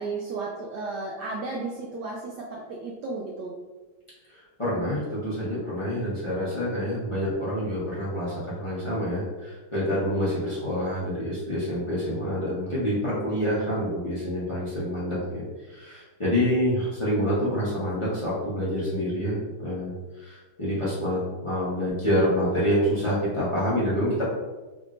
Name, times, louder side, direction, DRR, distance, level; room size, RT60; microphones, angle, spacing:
voice 1, 0.0-3.6, right 3 dB, 80° right, -2 dB, 0.9 m, -34 dB
voice 2, 4.3-15.4 15.7-19.9 20.2-24.2, equal, 20° left, -10 dB, 0.8 m, -27 dB
3.7 x 3.6 x 2.5 m, 1.2 s
omnidirectional pair, 2.3 m